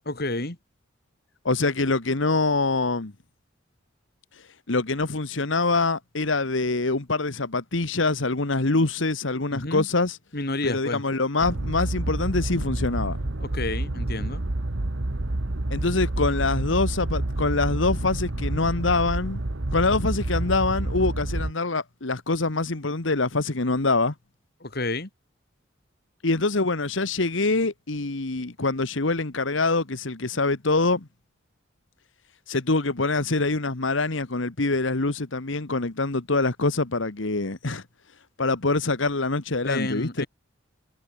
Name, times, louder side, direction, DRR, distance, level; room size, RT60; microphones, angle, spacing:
voice 1, 0.0-0.6 9.5-9.9 10.3-11.0 13.4-14.4 24.6-25.1 39.6-40.3, left 2 dB, 50° left, 2.7 m, -30 dB
voice 2, 1.4-3.1 4.7-10.2 10.6-13.2 15.7-19.4 19.7-24.1 26.2-31.1 32.5-37.8 38.4-40.2, left 3 dB, 70° left, 1.5 m, -25 dB
sound 1, 11.4-21.5, right 1 dB, 75° right, 1.5 m, -28 dB
head